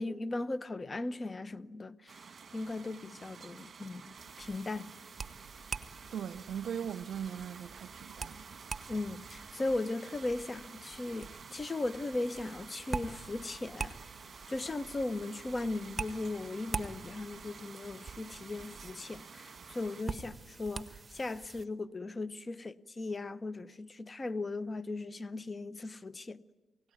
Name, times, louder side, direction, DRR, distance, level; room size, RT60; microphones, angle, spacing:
voice 1, 0.0-4.9 8.9-13.9 14.5-26.4, left 2 dB, 30° left, 0.8 m, -38 dB
sound 1, 2.1-20.0, right 6 dB, 45° right, 1.7 m, -51 dB
sound 2, 4.2-21.7, right 4 dB, 30° right, 1.5 m, -45 dB
voice 2, 6.1-8.4 14.6-14.7, right 8 dB, 65° right, 0.8 m, -39 dB
28.0 x 18.0 x 9.4 m
supercardioid pair, 55°, 0 cm